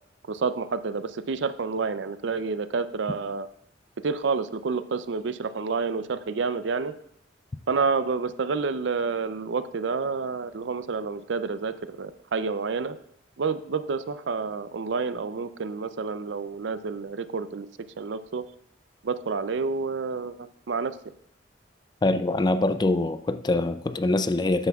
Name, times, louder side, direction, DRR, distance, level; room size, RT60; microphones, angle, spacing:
voice 1, 0.3-3.5 4.0-6.9 7.7-13.0 13.4-17.7 18.0-18.4 19.0-20.3 20.7-21.0, right 4 dB, 70° right, 0.5 m, -29 dB
voice 2, 22.0-24.7, left 2 dB, 20° left, 0.3 m, -24 dB
12.5 x 9.6 x 2.3 m
head